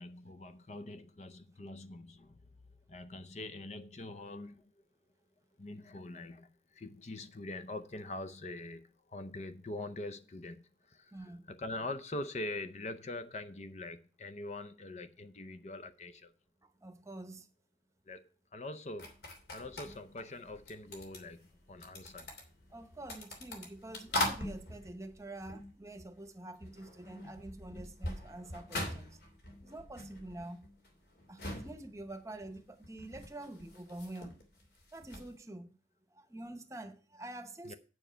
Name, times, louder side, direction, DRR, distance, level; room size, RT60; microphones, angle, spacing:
voice 1, 0.0-2.4 2.9-4.7 5.6-16.3 18.1-19.1 19.5-22.3 37.6-37.7, left 2 dB, 40° left, 0.6 m, -44 dB
voice 2, 11.1-11.5 16.6-17.5 22.1-22.2 22.7-29.2 29.6-30.7 31.3-34.3 34.9-35.7 36.1-37.8, right 1 dB, 15° right, 0.9 m, -47 dB
sound 1, 19.0-26.3 26.5-35.3, left 1 dB, 65° left, 3.0 m, -42 dB
8.9 x 7.2 x 5.6 m
head